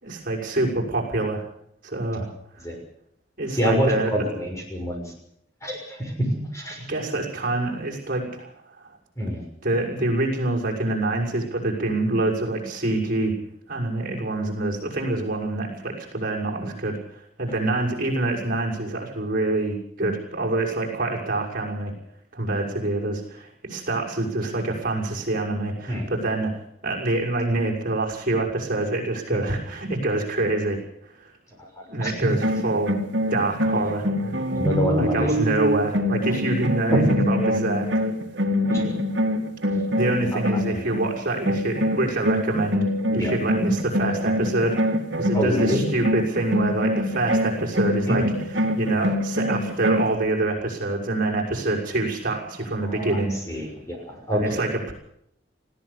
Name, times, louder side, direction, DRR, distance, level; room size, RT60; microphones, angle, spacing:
voice 1, 0.0-1.5 1.8-2.3 3.4-4.2 6.9-8.5 9.6-13.3 13.7-21.9 22.3-26.5 26.8-30.8 31.2-31.3 31.9-32.9 33.3-34.1 35.0-37.9 39.9-44.8 45.2-53.3 54.3-54.9, right 2 dB, 50° right, -1 dB, 6.4 m, -26 dB
voice 2, 3.5-5.0 5.6-6.9 9.2-9.4 25.9-26.1 29.3-29.4 31.6-32.1 34.5-35.3 36.9-37.2 38.7-38.9 40.5-40.9 43.1-43.4 45.3-45.9 48.1-48.3 52.8-54.6, equal, 15° left, 2 dB, 6.3 m, -26 dB
sound 1, 32.3-41.1 41.4-50.1, equal, 65° right, 2.5 m, -24 dB
20.0 x 16.0 x 8.4 m, 0.70 s
head